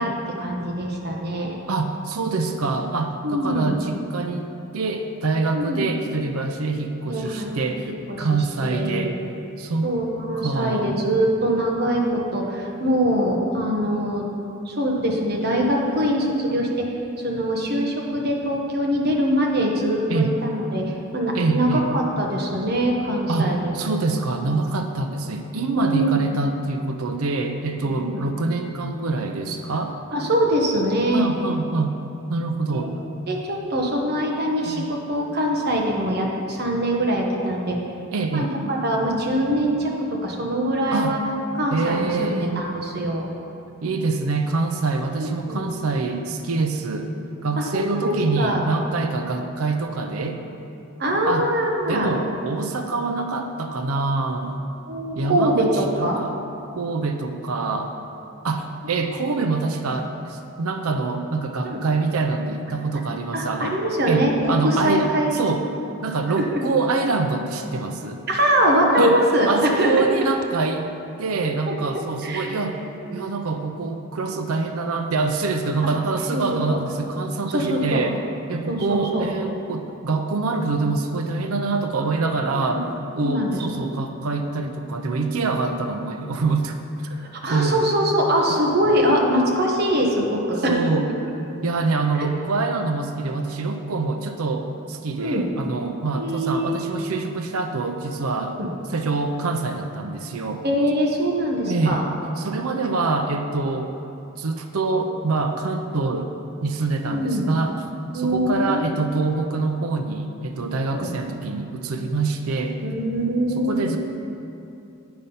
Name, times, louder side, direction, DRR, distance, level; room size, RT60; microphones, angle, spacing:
voice 1, 0.0-1.5 3.2-3.8 5.5-5.9 7.1-7.5 8.1-8.3 8.6-9.1 9.8-14.3 14.6-16.9 17.2-23.7 25.7-26.3 27.8-28.2 30.1-31.2 32.7-32.9 33.3-37.8 38.3-41.2 41.6-43.3 45.2-45.7 47.6-48.6 51.0-52.1 54.9-56.2 61.6-61.8 63.3-65.4 66.4-66.6 68.3-70.1 71.7-71.8 72.2-72.5 73.0-73.3 76.3-76.4 76.7-76.8 77.5-78.0 78.7-79.3 82.5-82.8 83.2-83.7 87.4-90.7 92.2-92.3 95.2-95.4 96.2-96.8 98.6-98.7 100.6-102.0 107.0-107.5 108.1-108.9 110.9-111.1 112.8-114.0, equal, 45° right, -1 dB, 1.1 m, -23 dB
voice 2, 1.7-4.5 4.7-7.9 8.2-9.2 9.6-9.9 10.4-11.0 20.1-20.4 21.3-21.9 23.3-30.0 31.1-32.0 32.3-32.9 34.6-34.9 38.1-38.5 40.9-41.2 41.7-42.6 43.8-47.1 47.4-50.4 51.3-51.5 51.9-54.6 55.2-56.4 56.8-57.9 58.4-63.8 64.1-65.7 66.0-68.3 69.0-70.9 71.2-72.8 73.1-78.2 78.5-82.9 83.1-86.8 87.5-87.8 88.5-88.6 88.9-89.0 90.7-91.1 91.6-98.6 98.9-100.6 101.6-102.1 102.4-103.9 104.3-106.3 106.6-107.8 108.1-112.8 113.6-114.0, right 3 dB, 85° right, 6 dB, 0.6 m, -25 dB
8.7 x 5.4 x 5.5 m, 2.7 s
head